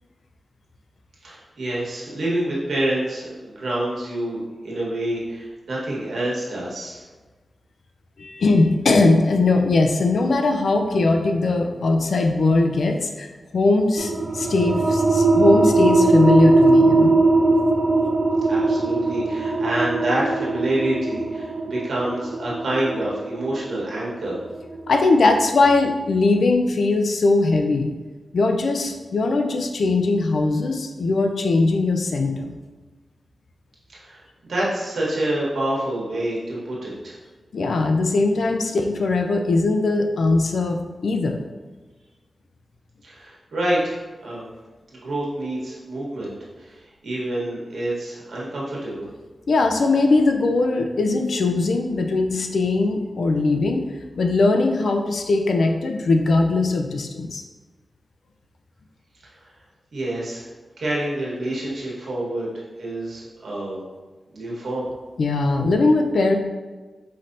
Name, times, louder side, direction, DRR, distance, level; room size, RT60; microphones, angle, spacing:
voice 1, 1.2-7.0 18.5-24.4 33.9-34.2 34.5-37.2 43.0-44.5 44.9-49.1 59.2-59.3 59.9-60.5 60.8-63.8 64.3-64.8, right 1 dB, 80° right, -6 dB, 1.5 m, -27 dB
voice 2, 8.2-17.2 24.9-27.9 28.3-32.5 37.5-41.4 49.5-53.9 54.2-57.4 65.2-66.3, left 3 dB, 80° left, 4 dB, 0.5 m, -20 dB
sound 1, 14.0-25.2, right 2 dB, 65° right, 0.5 m, -20 dB
5.6 x 3.2 x 2.7 m, 1.3 s
cardioid pair, 65°, 0 cm